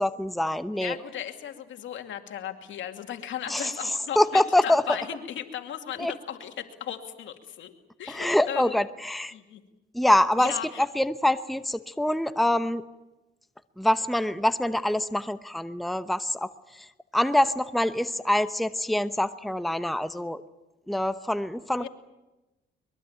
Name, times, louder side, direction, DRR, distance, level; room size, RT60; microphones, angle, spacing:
voice 1, 0.0-1.0 3.5-4.9 6.0-6.1 8.1-9.3 9.9-12.8 13.8-16.9 17.1-20.4 20.9-21.9, left 1 dB, ahead, 11 dB, 0.9 m, -25 dB
voice 2, 0.7-7.7 8.0-8.7 9.3-9.6 10.4-10.8 21.8-21.9, left 10 dB, 75° left, 6 dB, 2.4 m, -36 dB
23.0 x 22.0 x 8.9 m, 1.0 s
cardioid pair, 90°, 20 cm